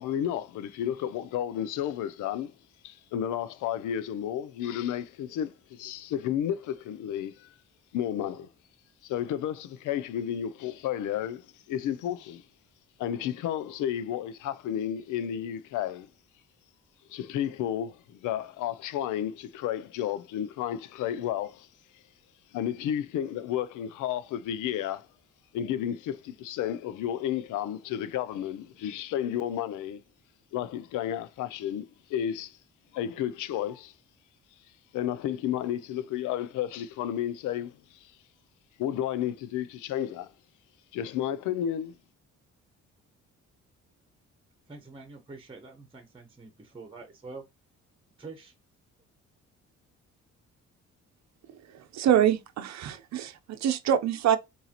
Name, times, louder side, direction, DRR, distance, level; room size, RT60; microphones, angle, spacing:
voice 1, 0.0-2.5 2.8-7.5 7.9-8.5 9.0-12.4 13.0-16.1 17.1-21.7 22.5-25.1 25.5-30.0 30.5-32.6 32.9-33.9 34.9-37.7 38.0-38.1 38.8-40.3 40.9-41.9, left 10 dB, 85° left, 0.5 m, -32 dB
voice 2, 44.7-47.4 48.2-48.5, right 3 dB, 15° right, 1.1 m, -45 dB
voice 3, 51.9-54.4, right 10 dB, 65° right, 0.7 m, -25 dB
4.8 x 2.7 x 2.9 m
cardioid pair, 90°, 30 cm